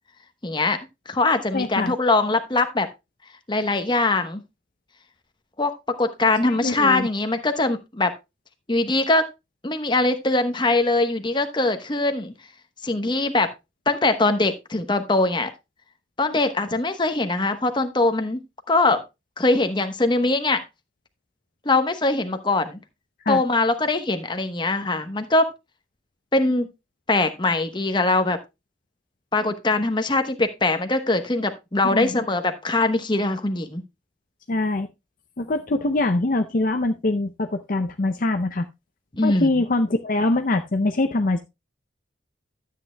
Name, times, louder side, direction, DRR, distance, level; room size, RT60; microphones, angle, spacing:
voice 1, 0.4-0.8 1.1-2.9 3.5-4.4 5.6-8.1 8.7-9.3 9.6-12.3 12.8-13.5 13.9-15.5 16.2-18.4 18.7-19.0 19.4-20.6 21.6-22.8 23.3-25.5 26.3-26.7 27.1-28.4 29.3-33.8 39.1-39.6, left 2 dB, 25° left, 8 dB, 1.0 m, -22 dB
voice 2, 1.5-1.9 6.6-7.1 23.3-23.4 31.9-32.1 34.5-34.9 35.4-38.7 39.2-41.4, left 2 dB, 45° left, 6 dB, 0.6 m, -23 dB
12.5 x 8.4 x 2.2 m, 0.23 s
head